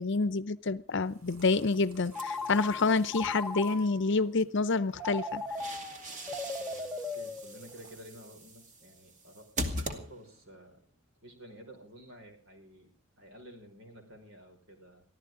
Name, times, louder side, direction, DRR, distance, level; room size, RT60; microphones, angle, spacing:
voice 1, 0.0-5.4, left 3 dB, 60° left, 0.7 m, -28 dB
sound 1, 0.9-8.0, right 2 dB, 85° right, 3.4 m, -56 dB
Telephone, 2.1-4.1 5.0-8.0, left 2 dB, 5° right, 1.0 m, -38 dB
sound 2, 2.1-3.3 5.2-10.6, right 1 dB, 35° right, 2.3 m, -41 dB
voice 2, 6.6-10.8 11.2-12.9 13.2-15.0, equal, 65° right, 5.5 m, -52 dB
23.5 x 15.0 x 3.8 m
head